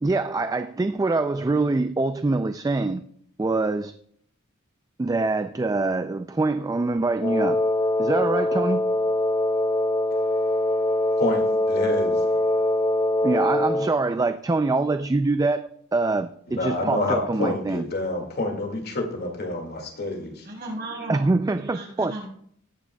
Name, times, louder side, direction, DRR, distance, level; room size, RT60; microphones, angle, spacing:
voice 1, 0.0-3.0 3.4-3.9 5.0-7.6 8.0-8.9 13.2-17.8 21.1-22.2, right 3 dB, 15° right, 0.3 m, -24 dB
Wind instrument woodwind instrument, 7.2-14.0, left 1 dB, 25° left, 0.6 m, -23 dB
voice 2, 11.2-12.2 16.5-20.4, left 1 dB, 50° left, 2.1 m, -28 dB
voice 3, 20.4-21.3 21.6-22.3, right 1 dB, 50° right, 4.9 m, -35 dB
19.0 x 8.8 x 2.3 m
head